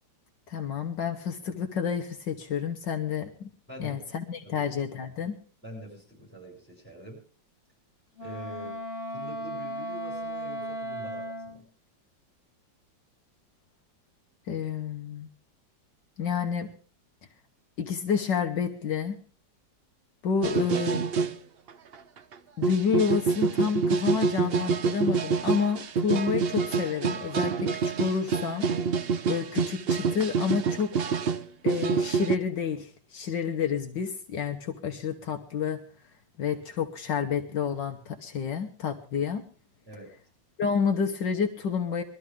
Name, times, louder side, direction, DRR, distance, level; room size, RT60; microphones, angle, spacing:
voice 1, 0.5-3.5 3.8-5.4 14.5-15.3 16.2-16.7 17.8-19.2 20.2-21.0 22.6-28.7 29.3-30.9 31.6-35.8 36.4-39.4 40.6-42.0, left 6 dB, 70° left, 5 dB, 1.8 m, -29 dB
voice 2, 3.7-4.0 4.4-4.7 5.2-5.3 5.6-7.2 8.2-8.8 9.1-11.6 39.9-40.1, equal, 5° left, -1 dB, 7.1 m, -44 dB
Wind instrument woodwind instrument, 8.1-11.6, right 1 dB, 30° left, 3.6 m, -36 dB
sound 1, 20.4-21.3 21.7-22.3 22.6-32.4, right 5 dB, 60° right, 0.6 m, -27 dB
21.5 x 13.0 x 3.6 m, 0.41 s
omnidirectional pair, 2.1 m